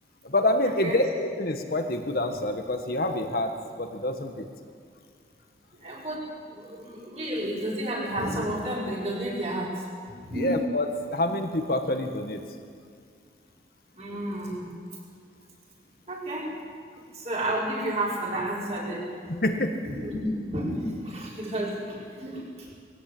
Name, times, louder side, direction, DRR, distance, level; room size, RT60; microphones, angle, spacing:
voice 1, 0.2-3.5 3.8-4.5 10.4-12.4 19.3-19.8, left 1 dB, 55° left, 5 dB, 1.5 m, -27 dB
voice 2, 5.7-9.9 10.2-10.5 13.9-14.7 16.1-16.5 17.1-19.3 19.8-22.7, right 1 dB, 40° right, -5 dB, 5.8 m, -31 dB
22.0 x 16.5 x 8.7 m, 2.1 s
head